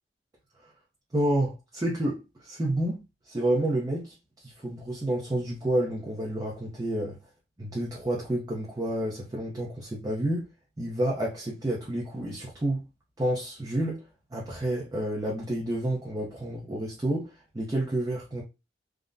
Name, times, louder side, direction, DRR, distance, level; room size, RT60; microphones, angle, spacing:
voice 1, 1.1-4.1 4.4-7.2 7.6-10.5 10.8-12.8 13.2-14.0 14.3-18.4, right 1 dB, 20° right, 0.6 m, -29 dB
3.5 x 2.1 x 2.5 m
head